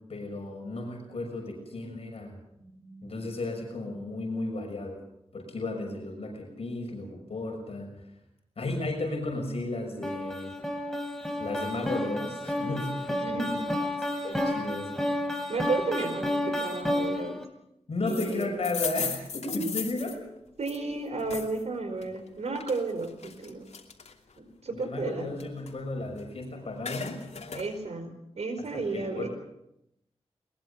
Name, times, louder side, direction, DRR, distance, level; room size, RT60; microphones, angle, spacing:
voice 1, 0.1-2.3 3.0-5.0 5.3-7.9 8.6-10.5 11.4-13.6 14.0-15.1 17.9-20.2 24.7-27.2 28.7-29.3, left 2 dB, 60° left, 1 dB, 6.3 m, -34 dB
voice 2, 2.6-3.3 13.1-13.5 15.5-17.4 18.0-18.5 20.6-23.7 24.4-25.4 27.5-29.3, right 3 dB, 75° right, 7 dB, 4.8 m, -33 dB
sound 1, 10.0-17.5, left 1 dB, 5° left, 3.7 m, -31 dB
sound 2, 18.1-21.6 22.0-24.4 24.8-26.3 26.6-27.7, left 5 dB, 80° left, 2.8 m, -37 dB
22.0 x 21.5 x 6.9 m, 0.81 s
wide cardioid pair, 120°, 11 cm